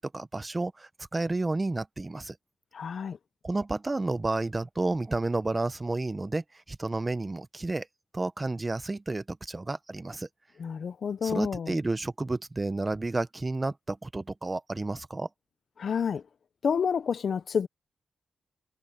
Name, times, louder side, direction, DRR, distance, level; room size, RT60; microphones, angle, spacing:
voice 1, 0.0-2.4 3.4-7.9 8.1-10.3 11.2-15.3, right 2 dB, 20° right, 0.7 m, -31 dB
voice 2, 2.7-3.2 10.6-11.8 15.8-16.2 16.6-17.7, left 6 dB, 60° left, 0.6 m, -29 dB
wide cardioid pair, 140°, 0 cm